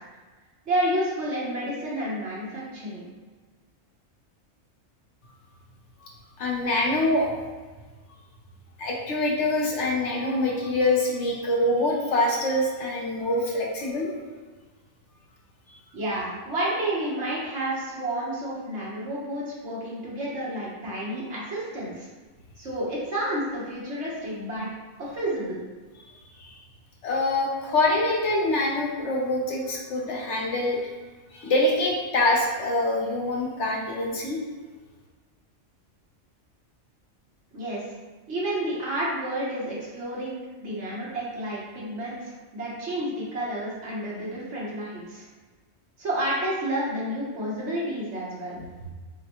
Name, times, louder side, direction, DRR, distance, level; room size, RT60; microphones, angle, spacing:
voice 1, 0.7-3.1 15.9-22.1 22.6-24.7 25.0-25.6 37.5-37.8 38.3-45.2 46.0-48.6, right 1 dB, 60° right, -6 dB, 1.4 m, -30 dB
voice 2, 6.4-7.3 8.8-14.1 15.7-15.8 26.1-26.2 27.0-30.8 31.3-34.4, left 2 dB, 65° left, -2 dB, 1.1 m, -25 dB
6.3 x 2.2 x 3.0 m, 1.3 s
omnidirectional pair, 1.3 m